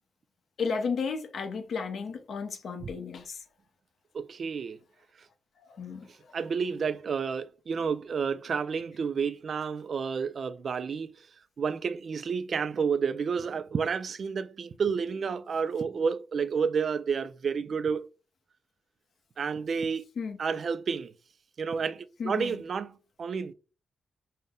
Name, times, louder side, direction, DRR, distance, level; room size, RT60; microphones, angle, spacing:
voice 1, 0.6-3.4 5.7-6.1 20.2-20.4 22.2-22.6, left 5 dB, 65° left, 0.8 m, -33 dB
voice 2, 4.1-4.8 6.3-11.1 11.6-18.1 19.4-20.0 20.4-21.1 21.6-23.5, right 6 dB, 55° right, 0.4 m, -30 dB
5.4 x 2.1 x 3.6 m
wide cardioid pair, 125°, 0 cm